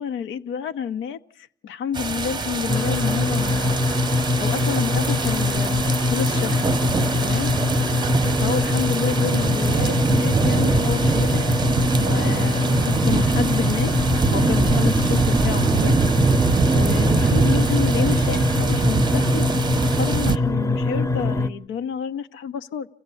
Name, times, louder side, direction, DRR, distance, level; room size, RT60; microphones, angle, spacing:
voice 1, 0.0-3.8 4.4-6.8 7.2-7.5 8.4-11.5 12.0-13.9 14.3-16.0 16.7-19.5 20.0-22.9, left 7 dB, 80° left, 0.9 m, -29 dB
sound 1, 1.9-20.4, right 5 dB, 20° right, 0.8 m, -23 dB
sound 2, 2.7-21.5, left 3 dB, 15° left, 0.9 m, -23 dB
27.0 x 15.0 x 8.4 m
cardioid pair, 90°, 20 cm